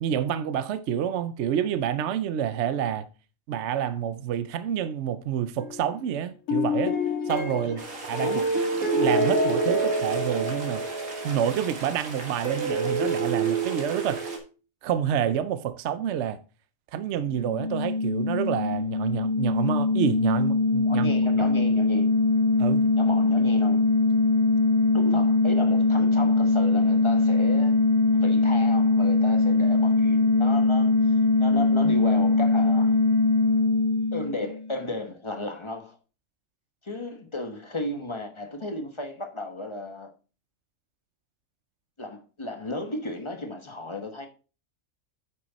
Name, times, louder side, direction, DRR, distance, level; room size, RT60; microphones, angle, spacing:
voice 1, 0.0-3.1 3.5-6.9 7.3-8.3 9.0-10.8 11.2-14.2 14.8-16.4 16.9-21.1 22.6-22.9, right 9 dB, 65° right, 0.8 m, -28 dB
sound 1, 5.6-6.0 6.5-10.8, left 2 dB, 85° left, 2.0 m, -29 dB
sound 2, 7.8-14.4, right 4 dB, 85° right, 2.2 m, -28 dB
voice 2, 8.2-8.5 20.8-22.1 23.0-23.8 24.9-27.8 28.1-33.0 34.1-36.0 36.8-40.1 42.0-44.3, left 2 dB, 20° left, 1.2 m, -34 dB
sound 3, 17.3-34.8, left 3 dB, 70° left, 0.4 m, -22 dB
9.3 x 6.1 x 4.0 m
omnidirectional pair, 1.4 m